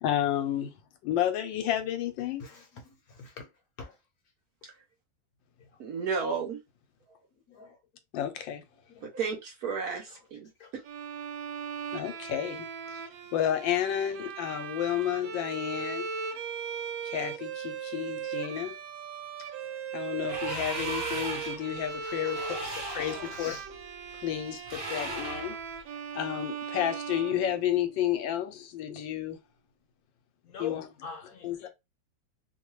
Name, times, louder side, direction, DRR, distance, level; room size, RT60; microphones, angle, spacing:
voice 1, 0.0-0.7 1.0-2.5 8.1-8.6 11.9-12.7 12.9-13.0 13.3-16.1 17.0-18.7 19.9-23.6 24.2-25.6 26.1-29.4 30.6-30.9 31.4-31.7, left 11 dB, 85° left, 1.3 m, -31 dB
voice 2, 2.4-2.8 3.1-3.5 3.8-3.9 7.5-7.8 10.6-10.7 22.0-23.6 30.4-31.7, left 7 dB, 65° left, 1.0 m, -43 dB
voice 3, 5.8-6.6 9.0-10.5, right 5 dB, 65° right, 1.0 m, -32 dB
Bowed string instrument, 10.9-28.1, right 6 dB, 85° right, 1.3 m, -38 dB
sound 1, 20.2-21.7 22.3-23.3 24.7-25.6, right 2 dB, 35° right, 1.5 m, -37 dB
3.0 x 2.2 x 3.0 m
omnidirectional pair, 2.0 m